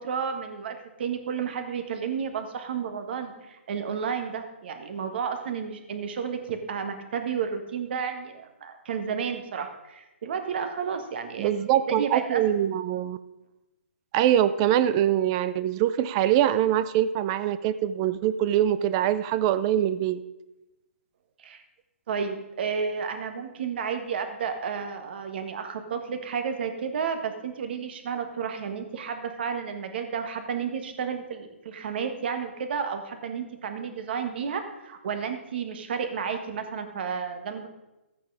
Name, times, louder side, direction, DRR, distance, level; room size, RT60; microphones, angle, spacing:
voice 1, 0.0-12.4 21.4-21.6 22.1-37.7, right 6 dB, 50° right, 6 dB, 1.7 m, -32 dB
voice 2, 11.4-13.2 14.1-20.2, right 11 dB, 25° right, 14 dB, 0.4 m, -23 dB
13.5 x 8.9 x 4.9 m, 0.99 s
hypercardioid pair, 155°, 7 cm